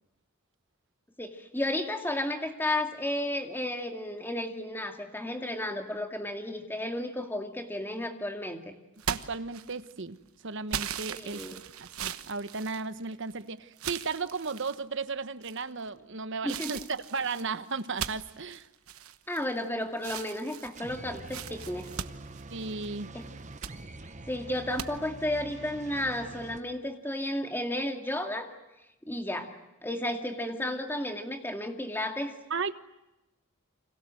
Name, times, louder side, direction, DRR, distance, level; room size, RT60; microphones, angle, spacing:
voice 1, 1.2-8.7 11.1-11.6 16.4-16.8 19.3-21.9 23.1-23.2 24.3-28.5 29.1-29.5 29.8-32.3, left 1 dB, 10° left, 5 dB, 2.3 m, -33 dB
sound 1, 9.0-10.0 10.7-13.3 13.8-14.8 15.4-15.9 16.5-19.6 20.0-23.0 23.4-23.8 24.8-24.9, right 8 dB, 85° right, 1.1 m, -39 dB
voice 2, 9.1-10.2 10.4-18.7 22.5-23.1 32.5-32.7, right 4 dB, 60° right, 13 dB, 1.1 m, -35 dB
sound 2, 20.7-26.6, right 2 dB, 35° right, 1.2 m, -45 dB
29.5 x 26.0 x 7.8 m, 0.95 s
head